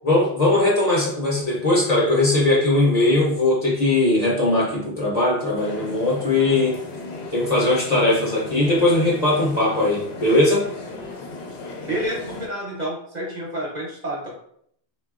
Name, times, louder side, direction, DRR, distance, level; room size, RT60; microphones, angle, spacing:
voice 1, 0.0-6.8 7.3-10.6, left 2 dB, 45° left, -4 dB, 0.8 m, -19 dB
sound 1, 5.6-12.5, left 2 dB, 80° left, 0.9 m, -36 dB
voice 2, 11.8-14.3, right 1 dB, 45° right, -3 dB, 0.9 m, -29 dB
3.7 x 2.2 x 2.4 m, 0.66 s
omnidirectional pair, 1.0 m